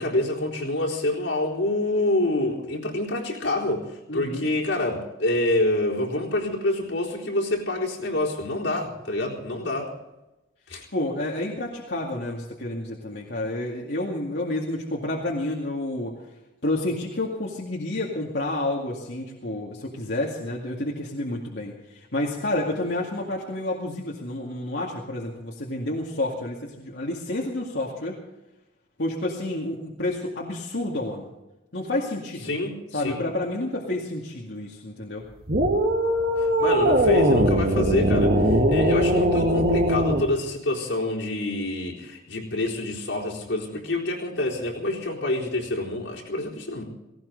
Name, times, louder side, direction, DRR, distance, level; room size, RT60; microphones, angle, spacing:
voice 1, 0.0-9.9 10.7-10.8 32.4-33.2 36.4-46.8, left 1 dB, 85° left, -3 dB, 4.1 m, -27 dB
voice 2, 4.1-4.5 10.9-16.2 16.6-28.2 29.0-31.3 31.7-32.6 32.9-35.3, left 1 dB, 70° left, -3 dB, 2.2 m, -29 dB
sound 1, 35.5-40.3, right 1 dB, 55° right, 1.7 m, -20 dB
18.0 x 17.5 x 4.1 m, 0.97 s
head